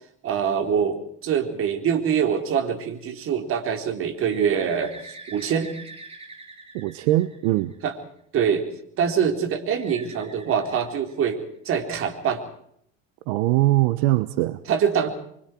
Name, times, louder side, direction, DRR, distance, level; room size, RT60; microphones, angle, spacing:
voice 1, 0.2-5.7 7.8-7.9 8.3-8.7 9.0-11.4 11.6-12.4 14.7-15.1, right 7 dB, 45° right, 4.1 m, -24 dB
Bird, 4.3-8.0 9.8-11.6, right 3 dB, 20° right, 7.2 m, -44 dB
voice 2, 6.7-7.7 13.3-14.6, right 17 dB, 75° right, 1.1 m, -21 dB
26.0 x 24.5 x 4.6 m
supercardioid pair, 115°, 30 cm